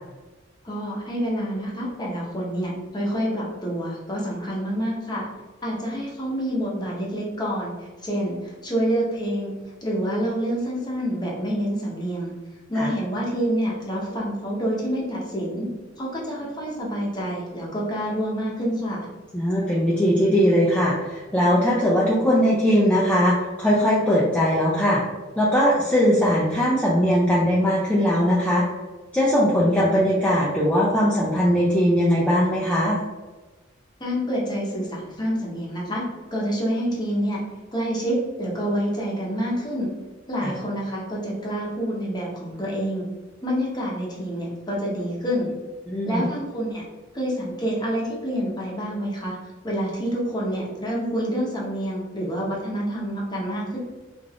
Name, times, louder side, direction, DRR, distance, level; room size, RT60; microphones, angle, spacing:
voice 1, 0.6-5.3 5.6-9.5 9.8-12.3 12.7-15.7 16.0-19.1 34.0-36.0 36.3-37.4 37.7-39.9 40.3-43.0 43.4-45.5 46.1-46.8 47.1-49.4 49.6-53.8, equal, 20° left, -4 dB, 0.7 m, -27 dB
voice 2, 19.3-25.0 25.4-28.6 29.1-33.0 40.4-40.5 45.9-46.2, equal, 5° left, -7 dB, 0.4 m, -20 dB
2.5 x 2.3 x 3.3 m, 1.3 s
head